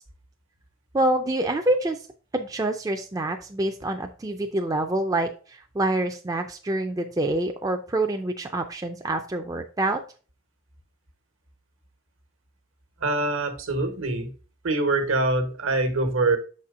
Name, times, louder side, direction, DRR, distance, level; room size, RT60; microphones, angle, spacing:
voice 1, 0.9-2.0 2.3-10.0, right 1 dB, 15° right, 4 dB, 0.4 m, -26 dB
voice 2, 13.0-14.3 14.6-16.4, right 2 dB, 75° right, 7 dB, 1.2 m, -24 dB
6.7 x 4.3 x 3.7 m, 0.37 s
head